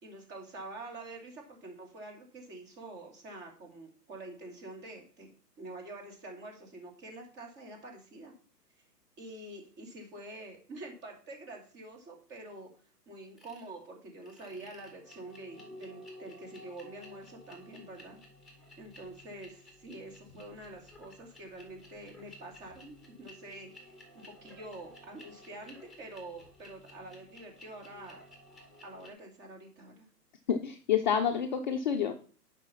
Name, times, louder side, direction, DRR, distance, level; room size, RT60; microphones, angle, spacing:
voice 1, 0.0-5.3 5.6-8.3 9.2-12.7 13.1-18.2 18.8-28.2 28.8-30.1, right 2 dB, 20° right, 2 dB, 2.7 m, -47 dB
sound 1, 13.4-13.7 14.2-29.1, left 1 dB, ahead, 2.1 m, -54 dB
voice 2, 30.5-32.2, left 8 dB, 30° left, 4 dB, 0.6 m, -28 dB
9.7 x 5.8 x 5.7 m, 0.43 s
hypercardioid pair, 145°, 49 cm